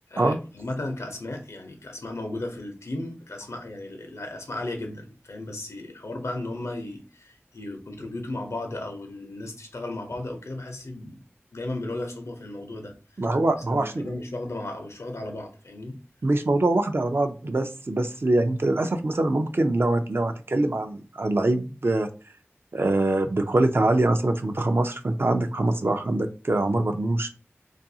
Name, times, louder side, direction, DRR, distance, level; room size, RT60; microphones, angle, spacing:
voice 1, 0.1-11.2 11.5-12.9 13.6-16.0, left 2 dB, 80° left, 0.6 m, -35 dB
voice 2, 13.2-14.1 16.2-22.1 22.7-27.3, right 2 dB, 50° right, 0.4 m, -24 dB
2.4 x 2.3 x 2.7 m
wide cardioid pair, 40°, 5 cm